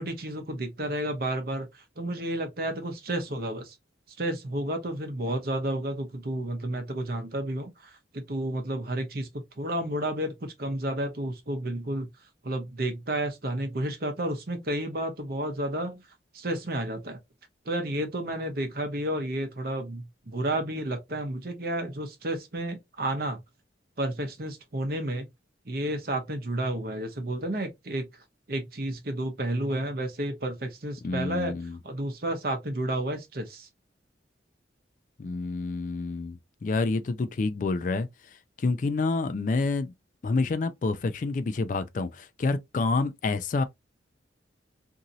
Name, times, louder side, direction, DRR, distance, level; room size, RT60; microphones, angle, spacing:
voice 1, 0.0-3.8 4.2-9.3 9.6-12.1 12.4-16.0 16.3-17.2 17.7-23.4 24.0-25.3 25.7-28.1 28.5-31.5 31.8-33.7, right 1 dB, 55° right, 0.8 m, -31 dB
voice 2, 31.0-31.8 35.2-38.1 38.6-39.9 40.2-43.6, left 3 dB, 45° left, 0.3 m, -28 dB
2.9 x 2.7 x 2.5 m
head